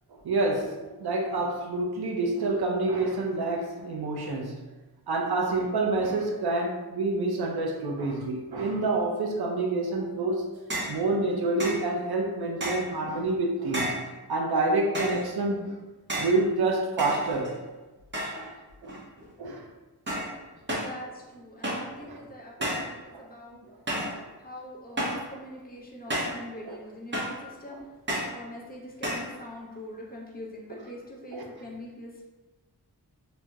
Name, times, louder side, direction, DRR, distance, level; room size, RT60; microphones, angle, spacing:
voice 1, 0.2-4.6 5.1-10.5 10.9-13.9 14.3-15.7 16.2-17.5 18.8-19.0 19.4-19.6 20.1-20.2 22.0-22.2 22.6-22.9 23.1-23.3 24.1-24.3 26.1-26.2 26.7-26.8 27.7-27.8 31.3-31.4, right 2 dB, 70° right, 1 dB, 0.6 m, -28 dB
sound 1, 10.7-11.0 11.6-11.9 12.6-13.0 13.7-14.1 14.9-15.3 16.1-16.4 17.0-17.6 18.1-18.5 18.8-19.3 20.1-20.4 20.7-21.0 21.6-21.9 22.6-22.9 23.9-24.2 25.0-25.3 26.1-26.4 27.1-27.4 28.1-28.4 29.0-29.3, right 1 dB, 30° right, 0.7 m, -31 dB
voice 2, 20.5-23.6 24.4-27.9 28.2-32.2, equal, 25° left, -3 dB, 0.6 m, -43 dB
4.1 x 2.0 x 2.3 m, 1.2 s
wide cardioid pair, 110°, 40 cm